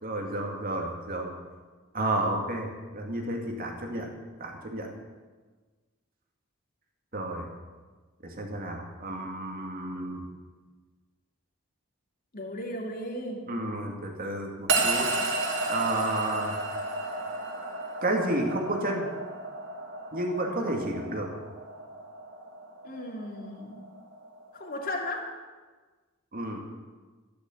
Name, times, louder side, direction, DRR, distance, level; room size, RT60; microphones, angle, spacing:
voice 1, 0.0-1.3 1.9-4.1 4.4-4.9 7.1-7.5 8.2-10.2 13.5-15.1 15.7-16.6 18.0-19.0 20.1-21.3 26.3-26.6, right 1 dB, 45° right, 1 dB, 2.5 m, -31 dB
voice 2, 12.3-13.4 22.8-23.8 24.5-25.3, left 1 dB, 45° left, 1 dB, 2.8 m, -35 dB
sound 1, 14.7-25.0, right 2 dB, 60° right, 3.1 m, -33 dB
13.0 x 12.0 x 8.1 m, 1.4 s
head